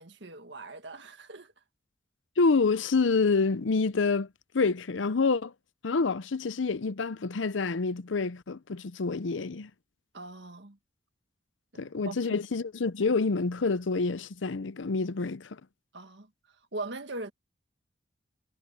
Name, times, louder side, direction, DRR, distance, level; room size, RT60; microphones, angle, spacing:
voice 1, 0.0-1.5 10.1-10.8 11.7-12.4 15.9-16.3 16.7-17.3, right 2 dB, 70° right, 1.8 m, -41 dB
voice 2, 2.4-4.3 4.5-5.5 5.8-9.7 11.8-15.6, left 4 dB, 85° left, 0.7 m, -27 dB
head